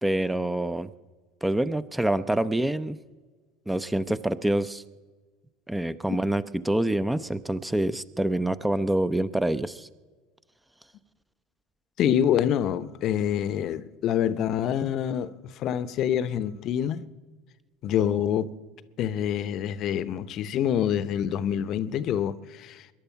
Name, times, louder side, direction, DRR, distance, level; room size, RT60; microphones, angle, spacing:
voice 1, 0.0-0.9 1.4-3.0 3.7-4.8 5.7-9.9, right 1 dB, 5° right, 0.7 m, -26 dB
voice 2, 12.0-17.0 17.8-18.5 19.0-22.9, left 9 dB, 50° left, 0.8 m, -26 dB
22.0 x 11.0 x 5.7 m
hypercardioid pair, 75°, 0 cm